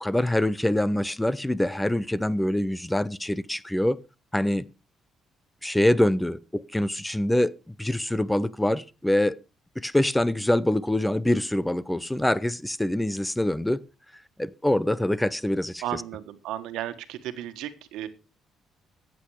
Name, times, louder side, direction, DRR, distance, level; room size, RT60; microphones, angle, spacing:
voice 1, 0.0-4.0 4.3-4.6 5.6-9.4 9.8-13.8 14.4-15.8, left 1 dB, 5° left, 0.6 m, -25 dB
voice 2, 15.8-18.1, right 12 dB, 90° right, 1.5 m, -34 dB
14.5 x 8.5 x 4.9 m
cardioid pair, 120°, 0 cm